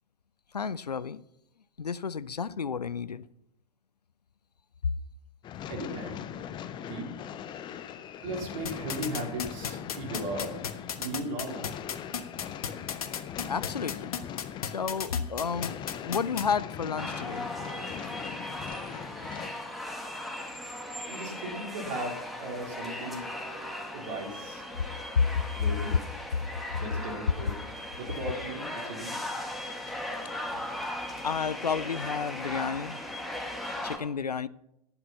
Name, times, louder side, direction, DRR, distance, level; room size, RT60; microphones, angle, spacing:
voice 1, 0.5-1.2 1.8-3.3 13.5-14.1 14.7-15.8 16.0-17.5 25.2-25.4 30.4-30.9 31.2-33.0 33.8-34.5, left 6 dB, 85° left, 0.5 m, -31 dB
sound 1, 5.4-19.5, left 9 dB, 25° left, 0.7 m, -40 dB
voice 2, 5.7-6.2 6.9-7.1 8.2-10.6 11.0-11.7 21.1-23.3 23.9-24.6 25.5-26.0 26.8-27.6 28.0-29.1, right 1 dB, 50° right, 3.9 m, -37 dB
sound 2, 8.7-16.4, left 7 dB, 65° left, 1.2 m, -33 dB
sound 3, 17.0-34.0, left 1 dB, ahead, 2.1 m, -38 dB
11.5 x 9.8 x 5.7 m
figure-of-eight pair, 95°, 20 cm